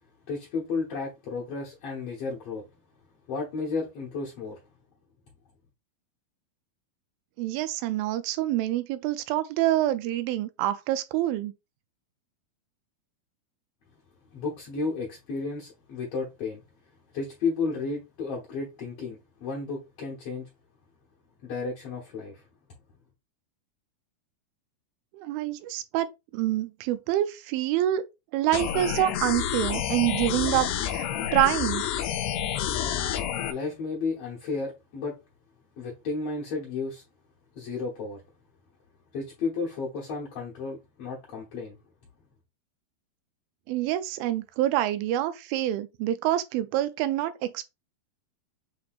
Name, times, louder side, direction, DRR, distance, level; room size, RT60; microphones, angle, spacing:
voice 1, 0.3-2.6 3.3-4.6 14.3-16.6 17.1-20.5 21.4-22.4 33.5-35.1 35.8-37.0 37.5-38.2 39.1-41.8, left 4 dB, 65° left, 1.5 m, -33 dB
voice 2, 7.4-11.5 25.1-26.1 26.3-28.1 28.3-31.9 43.7-47.7, right 13 dB, 80° right, 2.2 m, -26 dB
sound 1, 28.5-33.5, left 10 dB, 90° left, 2.6 m, -29 dB
7.6 x 2.9 x 2.4 m
omnidirectional pair, 4.4 m